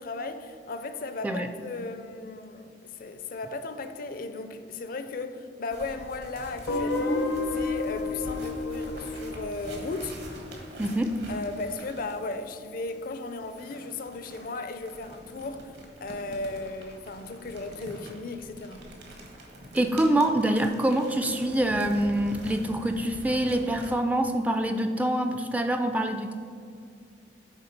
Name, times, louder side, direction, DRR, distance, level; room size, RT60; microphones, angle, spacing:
voice 1, 0.0-10.2 11.3-18.9, left 3 dB, 50° left, 0.4 m, -36 dB
sound 1, 5.7-12.3 13.5-23.9, right 1 dB, 65° right, 1.3 m, -45 dB
Guitar, 6.7-11.5, left 3 dB, 75° left, 0.7 m, -32 dB
voice 2, 10.8-11.1 19.7-26.3, right 1 dB, 10° right, 0.3 m, -25 dB
8.9 x 3.5 x 5.8 m
head